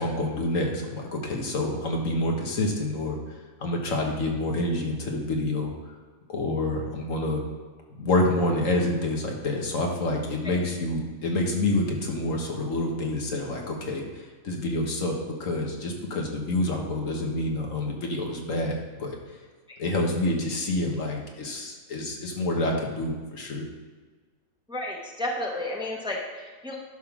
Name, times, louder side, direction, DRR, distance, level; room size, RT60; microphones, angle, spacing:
voice 1, 0.0-3.2 3.6-5.7 6.3-7.4 7.9-14.0 14.4-19.2 19.8-23.6, left 1 dB, 75° left, 1 dB, 1.6 m, -27 dB
voice 2, 24.7-26.8, left 1 dB, 5° right, -1 dB, 0.9 m, -32 dB
11.0 x 3.7 x 5.9 m, 1.4 s
omnidirectional pair, 1.4 m